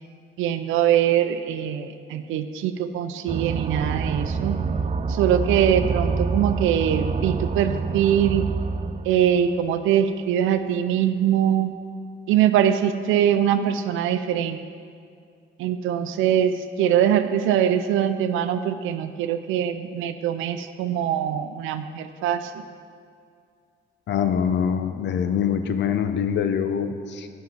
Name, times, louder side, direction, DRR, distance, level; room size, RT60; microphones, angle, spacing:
voice 1, 0.4-4.6 5.1-8.5 9.0-11.7 12.3-14.6 15.6-22.5, right 10 dB, 90° right, 9 dB, 0.5 m, -22 dB
sound 1, 3.3-9.8, right 5 dB, 35° right, 0.5 m, -27 dB
voice 2, 24.1-27.3, left 7 dB, 65° left, 9 dB, 0.7 m, -24 dB
9.1 x 5.8 x 5.7 m, 2.3 s
cardioid pair, 90°, 20 cm